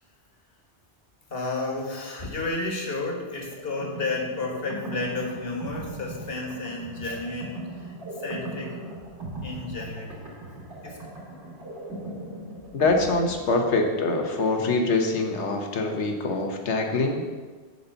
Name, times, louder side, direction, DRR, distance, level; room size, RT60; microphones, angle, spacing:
voice 1, 1.3-8.8 9.4-10.3 10.8-11.1, left 2 dB, 60° left, 0 dB, 1.7 m, -32 dB
sound 1, 3.5-14.0, right 1 dB, 90° right, 3.3 m, -39 dB
voice 2, 12.7-17.3, left 3 dB, 90° left, 3 dB, 1.4 m, -24 dB
9.3 x 4.2 x 6.8 m, 1.4 s
omnidirectional pair, 1.1 m